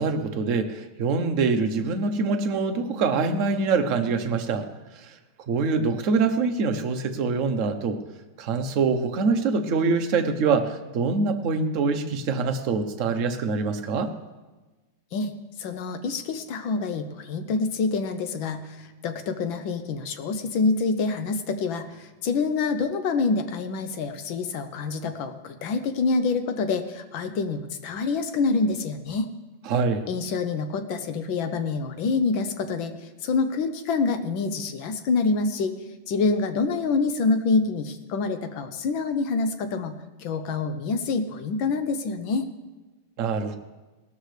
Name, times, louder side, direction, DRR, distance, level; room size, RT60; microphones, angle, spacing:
voice 1, 0.0-4.6 5.0-5.1 5.5-8.0 8.4-14.1 29.7-30.1 43.2-43.6, right 4 dB, 55° right, 7 dB, 1.0 m, -24 dB
voice 2, 15.6-29.3 30.1-35.7 36.1-42.5, left 4 dB, 70° left, 8 dB, 1.6 m, -26 dB
18.0 x 13.0 x 3.3 m, 1.2 s
omnidirectional pair, 2.3 m